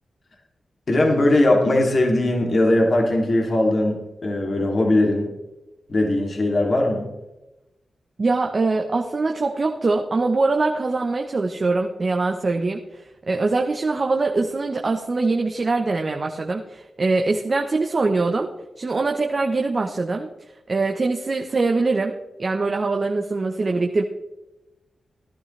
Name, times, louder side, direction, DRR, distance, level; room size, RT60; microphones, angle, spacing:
voice 1, 0.9-5.3 5.9-7.1, left 1 dB, 50° left, 0 dB, 2.8 m, -19 dB
voice 2, 8.2-18.5 18.8-20.3 20.7-24.0, right 3 dB, 45° right, 3 dB, 1.0 m, -23 dB
15.5 x 11.5 x 3.3 m, 1.0 s
cardioid pair, 60°, 0 cm